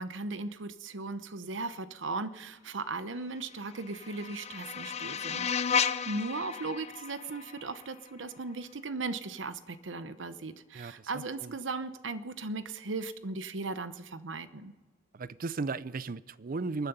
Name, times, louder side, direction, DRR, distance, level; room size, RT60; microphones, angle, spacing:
voice 1, 0.0-14.7, right 3 dB, 85° right, 0.9 m, -37 dB
sound 1, 3.5-8.5, left 7 dB, 35° left, 0.5 m, -34 dB
voice 2, 15.1-16.9, right 3 dB, 50° right, 0.5 m, -35 dB
27.0 x 9.7 x 5.5 m
head